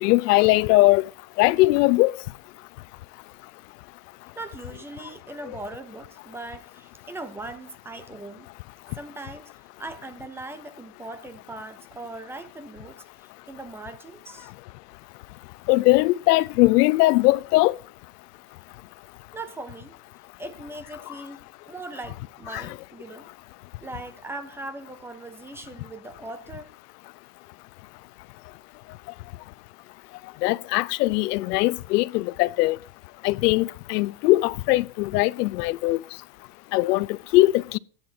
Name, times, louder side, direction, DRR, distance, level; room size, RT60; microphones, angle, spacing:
voice 1, 0.0-1.1 1.4-2.1 15.7-17.8 22.5-22.7 30.4-32.8 33.2-36.0 36.7-37.8, left 20 dB, 75° left, 0.6 m, -20 dB
voice 2, 4.4-8.5 9.0-14.5 19.3-19.9 20.4-23.3 23.8-26.7, right 2 dB, 5° right, 0.4 m, -40 dB
14.5 x 9.6 x 2.7 m
supercardioid pair, 145°, 48 cm